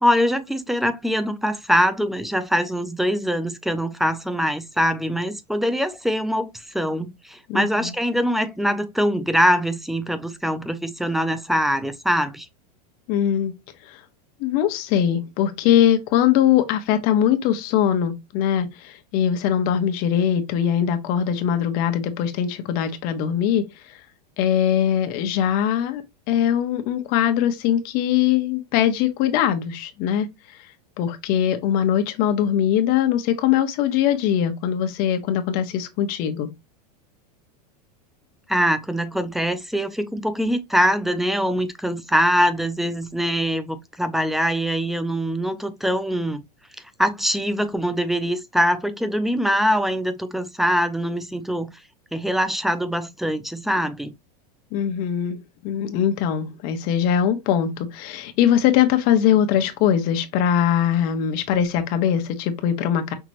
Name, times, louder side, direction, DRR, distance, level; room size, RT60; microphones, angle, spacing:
voice 1, 0.0-12.5 38.5-46.4 47.0-51.7 52.1-54.1, equal, ahead, 0.4 m, -23 dB
voice 2, 7.5-7.9 13.1-13.5 13.8-14.0 14.4-24.0 24.4-26.0 26.3-30.6 31.0-36.5 54.7-63.1, left 9 dB, 45° left, 1.1 m, -21 dB
5.9 x 3.0 x 2.8 m
supercardioid pair, 145°, 21 cm